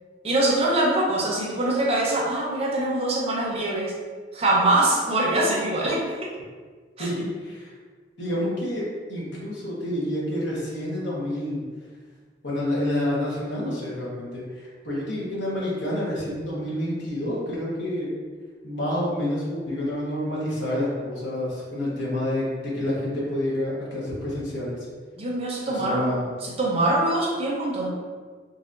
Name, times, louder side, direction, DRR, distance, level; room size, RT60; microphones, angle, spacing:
voice 1, 0.2-3.9 4.3-6.3 7.0-7.1 25.2-26.1 26.4-27.9, right 1 dB, 35° right, -4 dB, 0.7 m, -23 dB
voice 2, 7.0-7.7 8.2-11.6 12.4-18.1 18.6-24.9 25.7-26.3, left 1 dB, 80° left, -6 dB, 1.2 m, -28 dB
3.9 x 2.8 x 2.5 m, 1.5 s
head